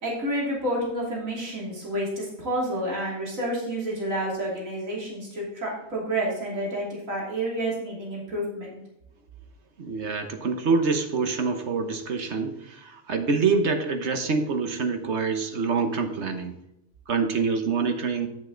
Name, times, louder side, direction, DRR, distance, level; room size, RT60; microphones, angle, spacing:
voice 1, 0.0-8.8, right 1 dB, 75° right, -4 dB, 3.3 m, -29 dB
voice 2, 9.8-16.5 17.1-18.3, right 4 dB, 55° right, 6 dB, 1.4 m, -26 dB
9.1 x 7.8 x 3.9 m, 0.88 s
omnidirectional pair, 1.4 m